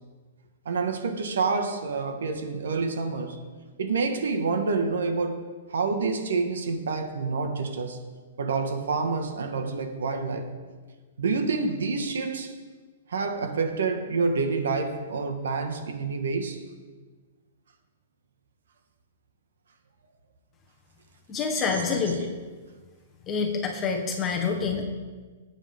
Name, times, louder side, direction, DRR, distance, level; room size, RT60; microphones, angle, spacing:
voice 1, 0.7-3.4 3.8-5.4 5.7-8.0 8.4-10.5 11.2-12.5 13.1-16.6 21.5-22.3, right 4 dB, 85° right, 1.7 m, -28 dB
voice 2, 21.3-22.3 23.3-24.8, left 5 dB, 15° left, 1.2 m, -27 dB
19.0 x 8.8 x 3.8 m
hypercardioid pair, 175°, 0 cm